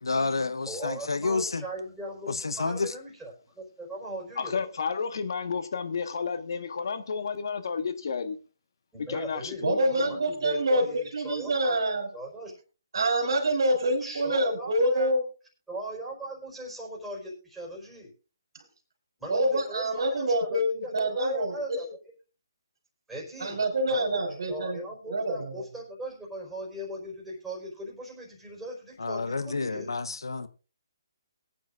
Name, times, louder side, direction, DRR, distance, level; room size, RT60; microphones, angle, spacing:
voice 1, 0.0-1.6 2.3-2.9 29.0-30.5, left 3 dB, 85° left, 0.9 m, -29 dB
voice 2, 0.7-4.6 8.9-11.8 12.1-12.5 14.0-15.1 15.7-18.1 19.2-21.9 23.1-23.6 23.9-29.9, right 1 dB, 5° right, 4.6 m, -39 dB
voice 3, 4.4-8.4 9.0-10.2, left 5 dB, 60° left, 1.3 m, -32 dB
voice 4, 9.6-12.1 12.9-15.2 19.3-21.9 23.4-24.8 25.1-25.5, right 1 dB, 65° right, 3.7 m, -26 dB
22.5 x 9.1 x 2.5 m
hypercardioid pair, 150°, 2 cm